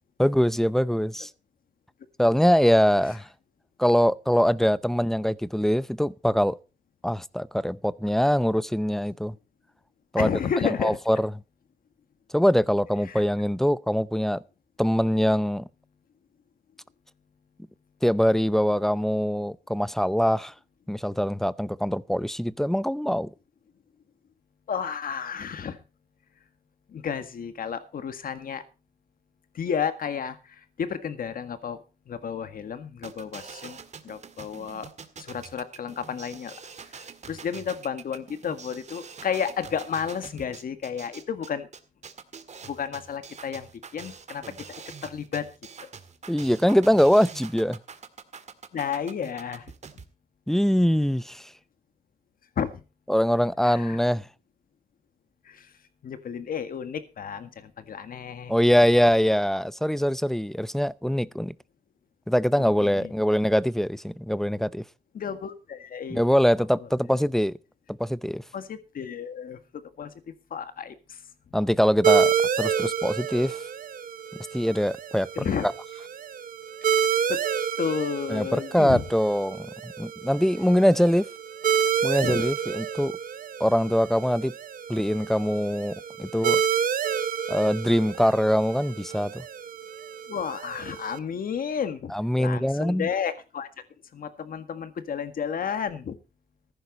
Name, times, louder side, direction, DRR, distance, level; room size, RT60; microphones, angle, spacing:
voice 1, 0.2-1.3 2.2-3.3 3.8-6.6 7.0-9.4 10.1-10.3 10.8-11.3 12.3-14.4 14.8-15.7 18.0-20.5 20.9-23.3 46.3-47.8 50.5-51.5 53.1-54.3 58.5-61.5 62.3-64.8 66.1-67.6 67.9-68.4 71.5-73.6 74.5-75.3 75.6-75.7 78.3-81.3 82.0-83.1 83.6-84.5 84.9-86.6 87.5-89.4 92.1-93.1, equal, ahead, 0.6 m, -23 dB
voice 2, 10.2-11.0 13.1-13.2 24.7-25.8 26.9-28.6 29.5-31.8 32.0-33.8 34.0-34.9 35.2-36.6 36.9-41.7 42.6-44.4 45.0-45.5 45.8-45.9 48.7-49.7 52.5-52.8 53.6-54.0 55.4-55.7 56.0-58.5 62.6-63.1 65.1-66.2 66.8-66.9 68.5-71.2 75.3-75.7 77.3-77.4 77.8-79.0 82.2-82.5 90.3-93.7 94.1-96.2, left 7 dB, 70° left, 1.8 m, -32 dB
sound 1, 33.0-50.0, right 6 dB, 50° right, 2.0 m, -44 dB
sound 2, 72.0-91.2, right 8 dB, 65° right, 0.9 m, -29 dB
14.5 x 11.5 x 4.1 m
cardioid pair, 100°, 15 cm